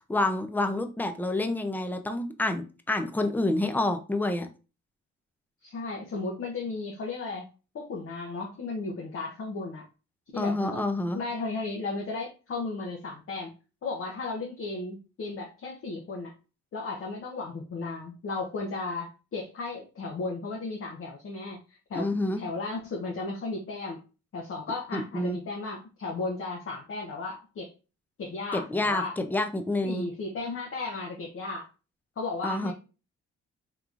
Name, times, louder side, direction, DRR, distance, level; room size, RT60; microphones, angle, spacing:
voice 1, 0.1-4.5 10.4-11.2 21.9-22.4 24.9-25.4 28.5-30.1 32.4-32.7, left 2 dB, 5° left, 7 dB, 0.4 m, -28 dB
voice 2, 5.6-7.4 7.7-9.8 10.3-10.9 11.1-13.5 13.8-16.3 16.7-21.6 21.9-22.1 22.4-24.0 24.3-27.7 28.2-29.1 29.8-31.7 32.2-32.7, left 3 dB, 45° left, -1 dB, 0.8 m, -35 dB
3.7 x 2.9 x 2.4 m, 0.33 s
cardioid pair, 90°, 30 cm